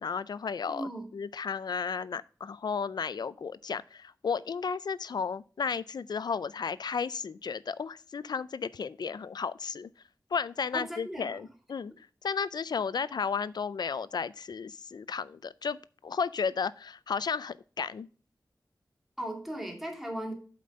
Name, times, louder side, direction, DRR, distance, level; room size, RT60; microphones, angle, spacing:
voice 1, 0.0-9.9 10.3-11.9 12.2-15.8 16.0-18.1, left 6 dB, 80° left, 0.4 m, -33 dB
voice 2, 0.7-1.1 10.7-11.4 19.2-20.3, right 1 dB, 5° right, 2.2 m, -37 dB
7.6 x 5.2 x 5.2 m
wide cardioid pair, 80°, 7 cm